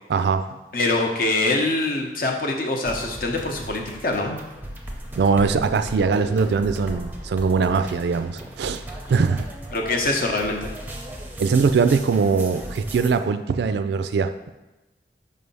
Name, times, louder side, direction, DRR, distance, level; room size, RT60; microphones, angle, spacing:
voice 1, 0.1-0.5 5.2-8.8 9.1-9.5 11.4-14.3, right 5 dB, 70° right, 10 dB, 0.3 m, -21 dB
voice 2, 0.7-4.4 9.7-10.7, left 2 dB, 50° left, 2 dB, 0.8 m, -24 dB
sound 1, 2.8-13.1, right 1 dB, 10° right, 0.6 m, -37 dB
5.3 x 3.4 x 5.4 m, 1.1 s
head